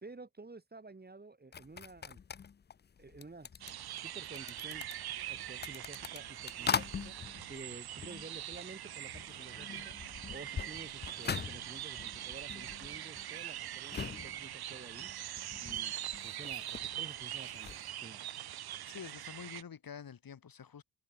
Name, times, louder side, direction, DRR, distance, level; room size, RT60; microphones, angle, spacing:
voice 1, 0.0-2.2 3.0-4.8 5.3-7.2 7.5-10.0 10.3-15.1 15.6-18.2, right 3 dB, 25° right, 3.9 m, -51 dB
sound 1, 1.5-8.8 9.1-17.9, left 7 dB, 25° left, 0.5 m, -43 dB
sound 2, 3.6-19.6, right 12 dB, 65° right, 0.8 m, -43 dB
voice 2, 18.9-20.8, left 7 dB, 60° left, 4.9 m, -48 dB
cardioid pair, 105°, 40 cm